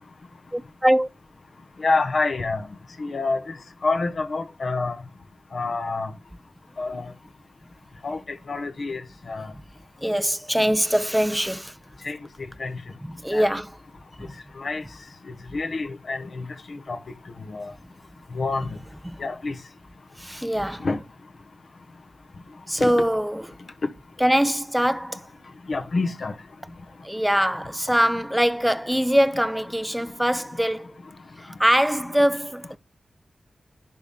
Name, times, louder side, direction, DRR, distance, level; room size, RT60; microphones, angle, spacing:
voice 1, 0.5-1.1 10.0-11.8 13.0-13.8 14.2-14.3 15.5-15.6 19.0-19.2 20.2-20.9 22.7-23.5 24.2-25.3 27.0-30.9 31.4-32.8, equal, 5° right, 0.4 m, -23 dB
voice 2, 1.8-2.7 3.0-3.4 3.8-5.0 5.5-6.1 6.8-7.0 8.0-8.2 8.5-9.0 9.3-9.5 12.0-12.2 12.6-12.8 13.3-13.5 14.6-14.8 15.5-17.0 17.5-17.7 18.3-18.7 19.2-19.5 20.8-21.0 22.8-22.9 25.7-26.3, left 3 dB, 65° left, 1.1 m, -27 dB
11.0 x 3.6 x 4.2 m
wide cardioid pair, 80°, 0 cm